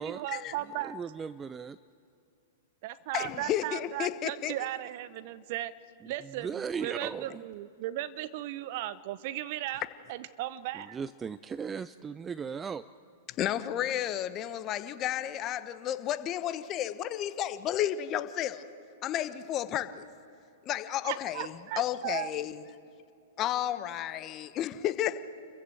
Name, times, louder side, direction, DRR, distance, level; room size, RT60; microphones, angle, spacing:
voice 1, 0.0-1.0 2.8-5.7 6.1-9.8 10.1-11.0 21.0-22.3, right 14 dB, 50° right, 16 dB, 0.8 m, -36 dB
voice 2, 0.8-1.8 6.0-7.5 10.7-12.9, right 6 dB, 20° right, 16 dB, 0.4 m, -37 dB
voice 3, 3.1-4.5 13.4-18.6 19.0-20.1 20.6-22.6 23.4-25.2, left 11 dB, 35° left, 12 dB, 1.1 m, -32 dB
27.5 x 15.0 x 7.8 m, 2.4 s
hypercardioid pair, 110°, 0 cm